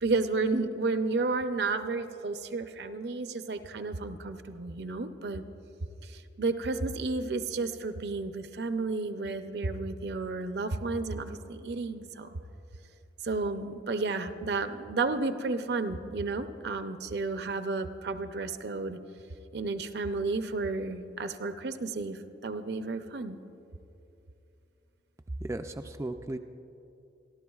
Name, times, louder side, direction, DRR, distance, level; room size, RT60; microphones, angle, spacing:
voice 1, 0.0-5.4 6.0-12.4 13.2-19.0 19.5-23.4, right 3 dB, 60° right, 9 dB, 0.6 m, -32 dB
voice 2, 25.4-26.4, right 1 dB, 15° right, 5 dB, 0.3 m, -35 dB
27.5 x 12.0 x 2.4 m, 2.8 s
head